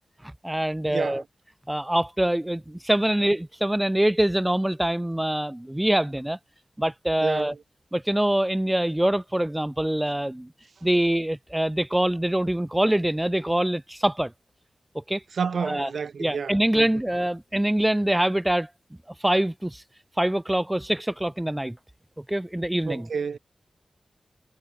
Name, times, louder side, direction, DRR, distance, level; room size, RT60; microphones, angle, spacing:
voice 1, 0.2-1.2 1.7-6.4 6.8-7.5 7.9-10.5 10.8-14.3 14.9-15.2 15.6-15.9 16.2-18.7 19.2-19.8 20.2-21.8 22.2-23.1, right 1 dB, 10° right, 0.5 m, -24 dB
voice 2, 0.9-1.2 7.2-7.5 15.4-16.9 22.9-23.4, right 6 dB, 85° right, 0.5 m, -30 dB
wide cardioid pair, 125°, 0 cm